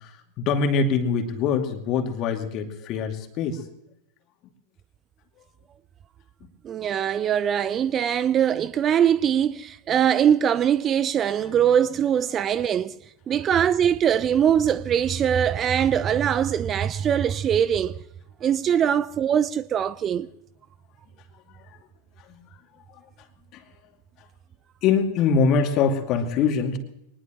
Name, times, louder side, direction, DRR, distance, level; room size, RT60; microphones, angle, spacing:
voice 1, 0.0-3.6 6.4-6.5 21.5-21.8 22.3-22.5 22.9-23.0 23.5-23.6 24.8-26.8, left 5 dB, 35° left, 2.4 m, -24 dB
voice 2, 6.6-13.0 13.3-18.0 18.4-20.3, right 9 dB, 25° right, 0.5 m, -22 dB
23.5 x 20.0 x 3.1 m
figure-of-eight pair, 90°, 0 cm